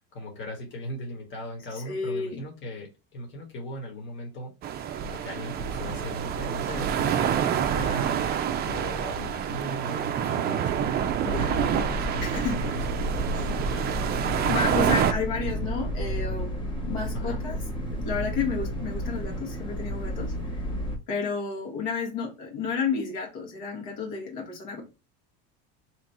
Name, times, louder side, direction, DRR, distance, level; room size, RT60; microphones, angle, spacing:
voice 1, 0.1-13.9 17.1-17.4, equal, 35° left, 1.4 m, -38 dB
voice 2, 1.7-2.4 11.2-11.6 12.2-12.8 13.3-13.5 14.5-16.6 16.9-17.6 17.9-20.3 21.1-24.8, left 5 dB, 70° left, 1.6 m, -31 dB
sound 1, 4.6-15.1, right 9 dB, 30° right, 0.4 m, -27 dB
sound 2, 11.3-21.0, equal, 15° left, 0.9 m, -32 dB
3.0 x 2.3 x 4.1 m
supercardioid pair, 125°, 33 cm